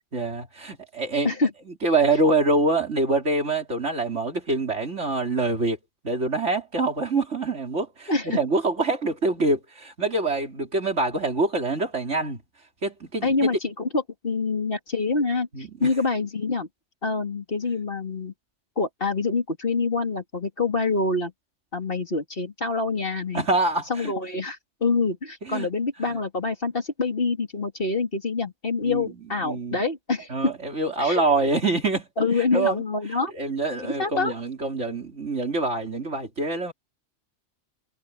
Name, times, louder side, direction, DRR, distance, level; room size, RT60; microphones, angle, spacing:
voice 1, 0.1-1.3 1.8-5.8 6.0-12.4 12.8-13.5 15.5-15.9 23.3-24.1 25.4-25.7 26.0-26.2 28.8-29.1 29.4-29.8 30.3-32.1 32.5-32.8 33.3-36.7, right 2 dB, 70° right, 3.8 m, -25 dB
voice 2, 8.1-8.4 13.2-16.7 17.0-18.3 18.8-21.3 21.7-23.4 23.9-30.5 31.0-31.2 32.2-33.3 33.8-34.3, left 3 dB, 50° left, 3.2 m, -26 dB
omnidirectional pair, 1.3 m